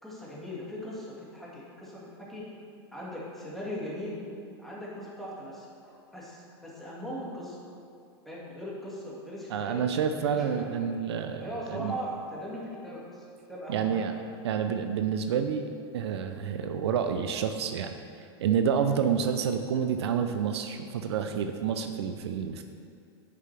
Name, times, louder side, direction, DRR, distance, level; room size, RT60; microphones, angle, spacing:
voice 1, 0.0-2.5 2.9-4.2 4.6-7.6 8.3-9.8 10.3-10.9 11.4-14.0, equal, ahead, -6 dB, 1.8 m, -39 dB
voice 2, 9.5-11.9 13.7-14.1 14.4-17.9 18.4-22.6, right 7 dB, 80° right, 7 dB, 0.5 m, -29 dB
9.5 x 5.7 x 3.3 m, 2.4 s
hypercardioid pair, 120°, 14 cm